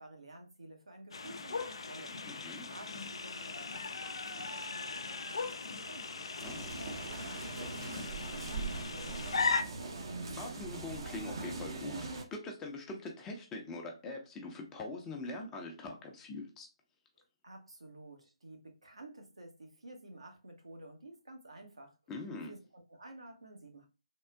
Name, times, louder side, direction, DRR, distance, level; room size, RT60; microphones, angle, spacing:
voice 1, 0.0-2.2 2.7-6.3 6.7-10.1 17.4-22.0 22.5-23.9, right 2 dB, 75° right, 1.0 m, -52 dB
sound 1, 1.1-9.6, left 4 dB, 60° left, 0.4 m, -38 dB
voice 2, 2.2-2.7 6.4-6.7 10.4-16.7 22.1-22.5, left 2 dB, 15° left, 0.6 m, -43 dB
sound 2, 6.4-12.2, right 3 dB, 50° right, 0.8 m, -41 dB
3.6 x 2.4 x 2.2 m
figure-of-eight pair, 135°, 3 cm